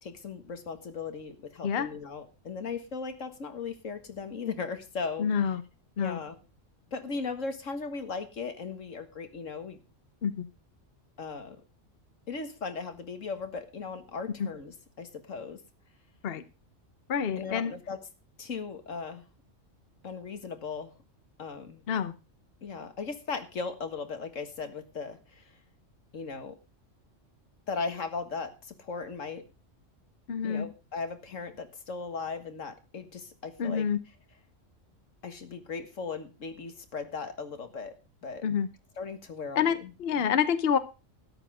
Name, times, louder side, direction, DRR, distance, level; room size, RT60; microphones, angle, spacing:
voice 1, 0.0-5.3 6.0-6.4 6.9-9.8 11.2-11.6 12.3-15.6 17.4-18.0 18.4-19.2 20.0-20.9 21.4-21.8 22.6-25.4 26.1-26.6 27.7-29.4 30.4-33.9 35.2-37.9 38.2-38.5 39.0-40.3, left 5 dB, 80° left, 8 dB, 2.0 m, -37 dB
voice 2, 5.2-5.6 6.0-6.2 10.2-10.5 14.4-14.5 16.2-16.4 17.1-17.7 21.9-22.1 30.3-30.7 33.6-34.0 38.4-38.7 39.6-40.8, left 7 dB, 55° left, 13 dB, 1.0 m, -27 dB
13.0 x 10.0 x 4.9 m, 0.31 s
omnidirectional pair, 1.3 m